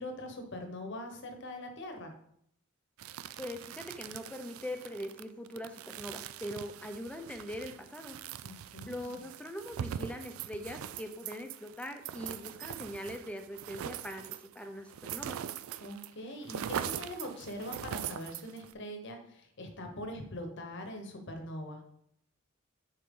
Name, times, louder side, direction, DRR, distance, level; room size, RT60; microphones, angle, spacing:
voice 1, 0.0-2.1 8.4-9.2 15.8-21.8, left 1 dB, 60° left, 5 dB, 1.1 m, -42 dB
sound 1, 3.0-16.1 16.3-18.7, right 9 dB, 80° right, 0.3 m, -42 dB
voice 2, 3.4-8.2 8.9-15.4, equal, 5° left, 6 dB, 0.6 m, -42 dB
6.8 x 4.4 x 3.7 m, 0.71 s
head